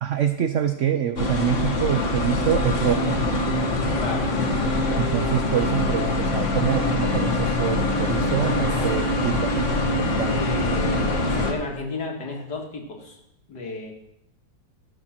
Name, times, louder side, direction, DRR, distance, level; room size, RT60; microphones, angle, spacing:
voice 1, 0.0-3.2 5.0-9.7 10.0-10.4, right 9 dB, 75° right, 8 dB, 0.7 m, -25 dB
sound 1, 1.2-11.5, left 2 dB, 45° left, 1.6 m, -23 dB
voice 2, 4.0-4.3 8.7-9.2 10.3-13.2 13.5-13.9, left 3 dB, 65° left, 1 dB, 2.5 m, -33 dB
15.5 x 6.5 x 6.0 m, 0.81 s
omnidirectional pair, 2.0 m